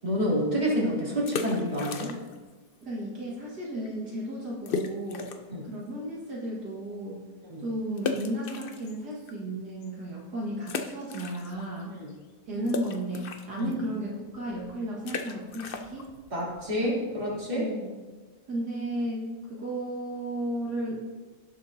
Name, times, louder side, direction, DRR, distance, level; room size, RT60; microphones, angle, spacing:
voice 1, 0.0-2.1 5.5-5.6 7.5-7.6 13.6-13.7 16.3-17.6, equal, 25° right, -6 dB, 2.9 m, -28 dB
sound 1, 1.2-2.5 2.8-2.9 3.5-3.6 3.8-3.9 4.7-5.6 6.1-6.2 8.0-9.3 9.8-9.9 10.6-11.8 12.1-17.6, left 4 dB, 70° left, 0.5 m, -36 dB
voice 2, 2.8-5.3 5.6-7.3 7.6-11.9 12.5-16.1 16.8-16.9 17.5-18.0 18.5-21.0, right 1 dB, 65° right, -5 dB, 2.3 m, -34 dB
17.5 x 7.6 x 2.7 m, 1.3 s
omnidirectional pair, 1.9 m